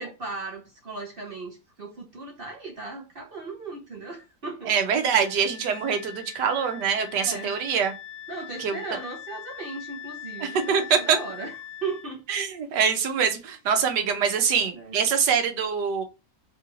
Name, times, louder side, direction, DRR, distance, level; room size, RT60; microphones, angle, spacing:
voice 1, 0.0-4.7 7.2-7.5 8.3-11.5 11.8-12.2 14.5-15.0, right 3 dB, 45° right, 0.7 m, -37 dB
voice 2, 4.7-7.9 8.6-8.8 10.4-11.2 12.3-16.0, right 7 dB, 80° right, 1.4 m, -24 dB
Wind instrument woodwind instrument, 5.1-12.1, left 11 dB, 75° left, 0.6 m, -42 dB
3.8 x 2.4 x 3.0 m
omnidirectional pair, 1.8 m